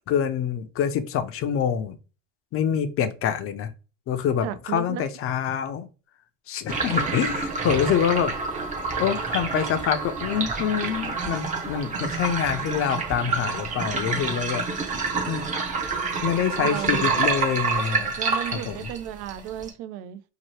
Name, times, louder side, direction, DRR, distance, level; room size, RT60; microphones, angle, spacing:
voice 1, 0.1-2.0 2.5-3.7 4.1-5.9 6.5-8.3 9.0-15.5 16.2-18.1 18.5-18.9, left 8 dB, 35° left, 0.4 m, -26 dB
voice 2, 4.4-5.1 16.6-17.1 18.2-20.2, right 12 dB, 70° right, 0.5 m, -34 dB
sound 1, 6.7-19.7, right 4 dB, 20° right, 0.5 m, -28 dB
2.8 x 2.1 x 3.1 m
supercardioid pair, 115°, 39 cm